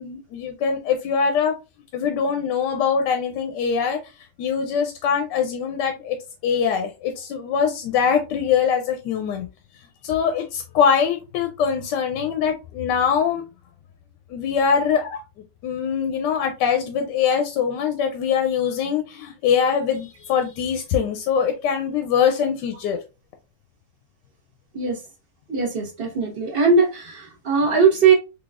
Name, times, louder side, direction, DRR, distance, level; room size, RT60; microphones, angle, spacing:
voice 1, 0.0-1.5 1.9-4.0 4.4-6.2 6.4-9.5 10.0-13.4 14.3-15.2 15.6-23.0, left 7 dB, 90° left, 1.2 m, -23 dB
voice 2, 25.5-28.1, right 5 dB, 40° right, 1.3 m, -19 dB
3.9 x 3.0 x 2.4 m
omnidirectional pair, 1.8 m